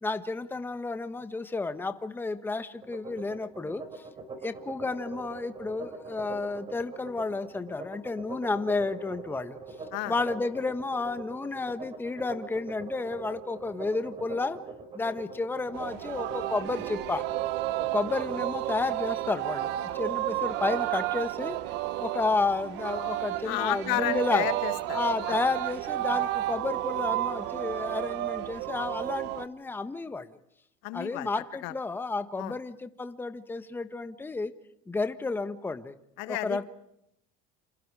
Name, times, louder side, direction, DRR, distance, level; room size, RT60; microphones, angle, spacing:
voice 1, 0.0-4.0 4.4-9.6 10.1-14.6 14.9-17.3 17.9-21.5 22.0-24.5 24.9-30.3 30.9-34.5 34.9-35.9 36.3-36.6, left 3 dB, 10° left, 9 dB, 1.4 m, -31 dB
sound 1, 2.8-18.8, right 4 dB, 30° right, 4.9 m, -42 dB
Singing, 15.7-29.5, right 15 dB, 65° right, 1.4 m, -32 dB
voice 2, 23.4-25.0 25.3-25.4 30.8-31.3 31.6-31.7 32.4-32.5 36.2-36.6, left 19 dB, 80° left, 12 dB, 1.6 m, -32 dB
29.5 x 27.5 x 4.9 m, 0.80 s
cardioid pair, 130°, 19 cm